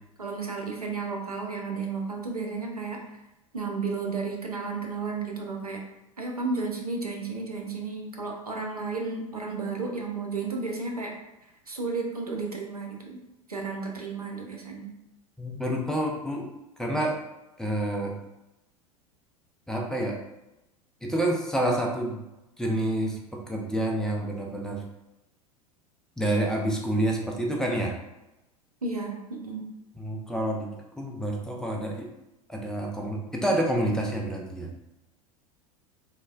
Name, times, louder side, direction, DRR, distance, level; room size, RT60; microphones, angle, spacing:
voice 1, 0.2-3.0 3.5-5.8 6.2-11.2 11.7-13.2 13.5-14.9 28.8-29.7, right 4 dB, 90° right, 1 dB, 0.5 m, -33 dB
voice 2, 15.4-16.5 16.8-17.2 17.6-18.2 19.7-20.2 21.0-22.3 22.6-24.8 26.2-28.0 30.0-30.7 31.0-32.1 32.5-34.7, right 1 dB, 5° left, -1 dB, 0.4 m, -28 dB
3.1 x 2.1 x 2.4 m, 0.93 s
figure-of-eight pair, 80°, 19 cm